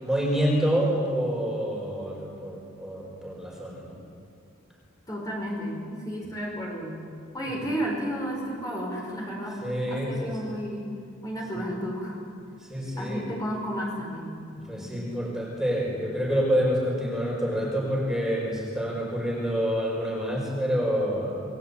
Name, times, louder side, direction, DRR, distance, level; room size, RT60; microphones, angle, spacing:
voice 1, 0.0-4.0 7.5-7.6 9.6-10.3 12.7-13.2 14.7-21.5, equal, ahead, -2 dB, 5.1 m, -27 dB
voice 2, 5.1-7.0 7.3-10.9 11.2-12.2 13.0-14.4 14.8-14.9, equal, 20° left, -2 dB, 5.1 m, -32 dB
28.5 x 21.0 x 8.4 m, 2.4 s
head